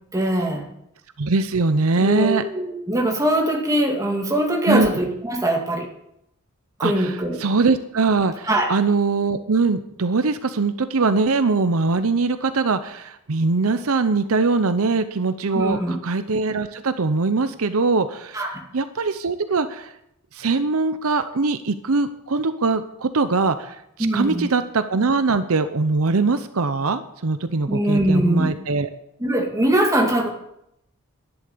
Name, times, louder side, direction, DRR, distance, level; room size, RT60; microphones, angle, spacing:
voice 1, 0.1-0.7 2.0-5.9 6.8-7.4 8.5-8.7 15.5-15.9 18.3-18.6 24.0-24.5 27.7-28.5 29.2-30.3, right 1 dB, 15° right, 1 dB, 2.3 m, -22 dB
voice 2, 1.2-2.4 4.7-4.9 6.8-18.4 18.7-19.9 20.3-23.8 24.1-28.9, right 4 dB, 70° right, 10 dB, 0.7 m, -22 dB
11.5 x 11.0 x 6.8 m, 0.78 s
head